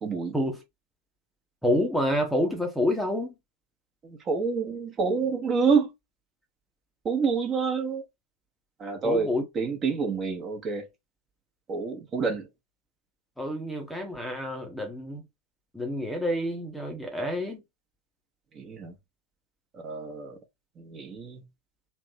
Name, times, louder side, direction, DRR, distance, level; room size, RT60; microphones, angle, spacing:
voice 1, 0.0-0.3 4.0-5.9 7.0-8.0 8.8-9.3 9.5-10.8 11.7-12.4 18.5-18.9 19.7-20.4 20.8-21.4, right 5 dB, 25° right, 1.1 m, -27 dB
voice 2, 1.6-3.3 9.0-9.4 13.4-15.2 15.7-17.6, left 1 dB, ahead, 0.9 m, -28 dB
3.3 x 2.9 x 2.7 m
figure-of-eight pair, 90°, 0 cm